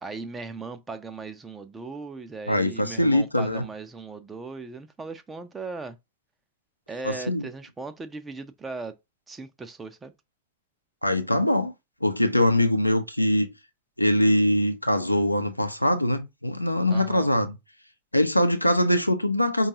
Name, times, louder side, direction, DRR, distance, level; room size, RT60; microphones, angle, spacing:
voice 1, 0.0-6.0 6.9-9.0 9.3-10.1 16.9-17.3, right 4 dB, 15° right, 0.5 m, -38 dB
voice 2, 2.5-3.6 7.0-7.5 11.0-11.7 12.0-13.5 14.0-17.6 18.1-19.7, left 1 dB, 85° left, 0.6 m, -22 dB
5.2 x 2.3 x 2.8 m
figure-of-eight pair, 90°, 0 cm